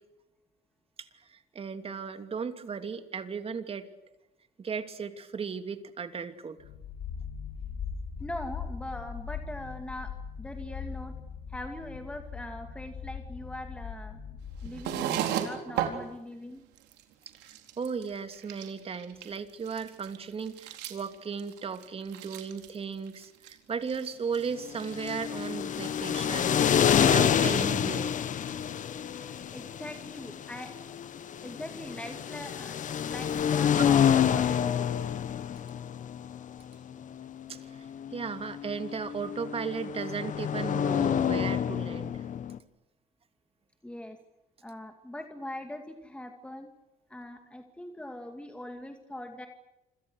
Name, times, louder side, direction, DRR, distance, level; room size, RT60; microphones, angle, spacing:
voice 1, 1.0-3.9 4.6-6.6 17.8-28.1 37.5-37.6 38.1-42.3, right 6 dB, 35° right, 8 dB, 2.9 m, -36 dB
sound 1, 6.6-15.0, left 6 dB, 80° left, 3.0 m, -40 dB
voice 2, 8.2-10.1 10.4-11.1 11.5-14.2 14.6-16.6 29.5-30.7 31.4-34.9 43.8-44.2 44.6-46.7 47.1-49.5, left 1 dB, 5° left, 5 dB, 2.5 m, -41 dB
sound 2, 14.6-16.0 16.5-16.6 16.8-17.0 17.3-18.0 18.3-19.4 19.7-22.8 23.1-23.5 23.9-24.5 24.7-25.2, right 11 dB, 90° right, 4.2 m, -34 dB
sound 3, 24.7-42.6, left 9 dB, 50° left, 1.4 m, -28 dB
28.5 x 26.0 x 6.5 m, 0.95 s
cardioid pair, 110°, 17 cm